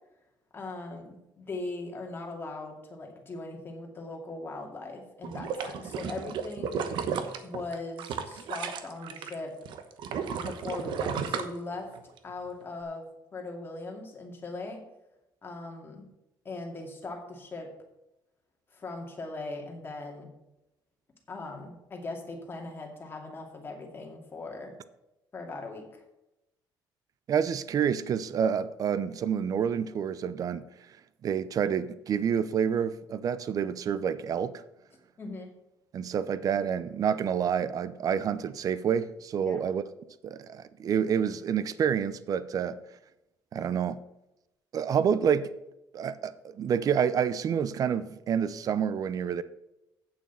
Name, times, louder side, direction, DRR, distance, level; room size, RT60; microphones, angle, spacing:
voice 1, 0.5-6.9 7.4-9.6 10.4-12.0 12.2-14.8 15.4-16.1 16.4-17.7 18.7-20.3 21.3-24.7 25.3-26.0 35.2-35.5 39.4-39.6 42.6-42.7, left 3 dB, 25° left, 2.4 m, -39 dB
sound 1, 5.2-9.3 9.7-12.2 12.6-12.7, right 7 dB, 70° right, 1.0 m, -33 dB
voice 2, 27.3-30.7 31.2-34.6 35.9-39.8 40.2-42.8 43.5-44.0 44.7-45.5 45.9-49.4, right 8 dB, 45° right, 0.6 m, -28 dB
8.9 x 7.2 x 5.7 m
cardioid pair, 130°, 8 cm